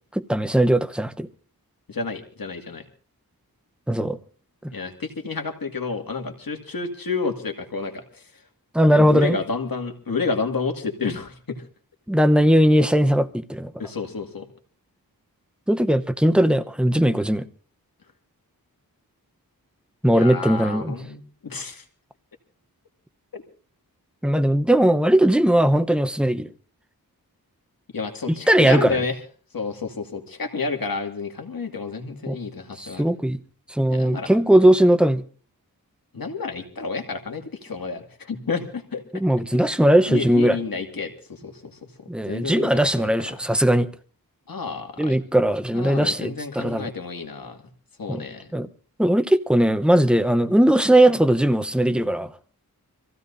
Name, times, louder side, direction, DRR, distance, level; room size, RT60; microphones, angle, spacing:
voice 1, 0.2-1.3 3.9-4.2 4.6-4.7 8.7-9.4 12.1-13.7 15.7-17.5 20.0-21.0 24.2-26.5 28.3-29.0 32.3-32.4 32.8-33.4 33.7-35.2 39.1-40.6 42.1-43.9 45.0-46.9 48.1-48.2 48.5-48.7 49.0-52.3, right 1 dB, 5° right, 0.8 m, -19 dB
voice 2, 1.9-2.8 4.7-8.2 8.8-11.6 13.8-14.5 20.1-21.8 23.3-23.4 27.9-29.1 29.5-33.1 33.9-34.4 36.1-39.0 39.5-39.6 40.1-41.7 42.2-43.1 44.5-45.2 45.7-47.6 48.0-48.5, left 4 dB, 65° left, 2.2 m, -30 dB
25.5 x 15.5 x 2.7 m
wide cardioid pair, 65°, 37 cm